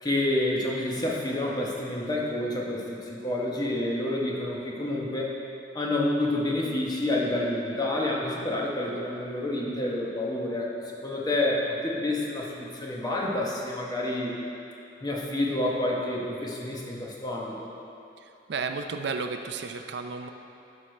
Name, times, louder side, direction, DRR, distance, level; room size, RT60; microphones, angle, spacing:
voice 1, 0.0-5.3 5.7-14.4 15.0-17.7, left 1 dB, 20° left, -3 dB, 1.0 m, -29 dB
voice 2, 18.5-20.3, right 4 dB, 65° right, 6 dB, 0.5 m, -32 dB
11.0 x 6.3 x 3.2 m, 2.7 s
head